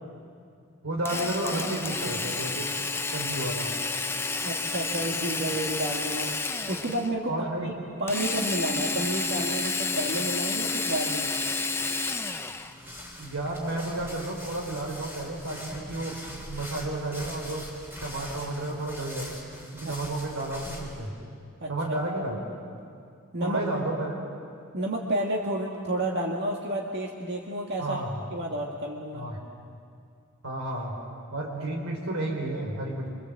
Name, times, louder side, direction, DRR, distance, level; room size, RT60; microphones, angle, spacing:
voice 1, 0.8-2.7 3.1-3.7 7.3-7.7 13.2-16.2 16.5-17.7 18.0-19.3 19.7-21.1 21.7-22.4 23.4-24.2 27.8-28.2 29.1-29.4 30.4-31.0 31.3-33.1, right 2 dB, 70° right, 0 dB, 4.4 m, -32 dB
Drill, 1.0-7.1 8.1-12.7, left 3 dB, 10° left, 0.8 m, -30 dB
voice 2, 4.4-6.3 6.7-7.3 7.6-7.7 8.0-11.3 19.8-19.9 21.6-21.7 23.3-23.6 24.7-28.0 28.3-29.2, right 1 dB, 50° right, -1 dB, 2.0 m, -30 dB
sound 1, 12.5-21.1, left 1 dB, 10° right, 4.8 m, -42 dB
27.5 x 25.0 x 7.8 m, 2.4 s
head